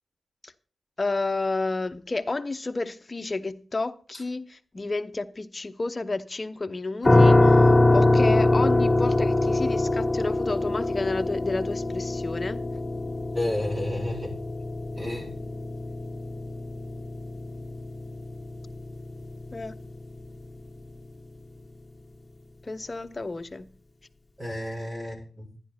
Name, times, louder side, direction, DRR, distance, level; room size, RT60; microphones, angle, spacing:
voice 1, 1.0-12.6 19.5-19.7 22.6-23.7, left 3 dB, 40° left, 0.8 m, -31 dB
sound 1, 7.0-19.9, left 2 dB, 20° left, 2.0 m, -23 dB
voice 2, 13.3-14.3 15.0-15.3 24.4-25.5, left 1 dB, 45° right, 4.7 m, -31 dB
11.0 x 10.5 x 4.4 m
cardioid pair, 55°, 0 cm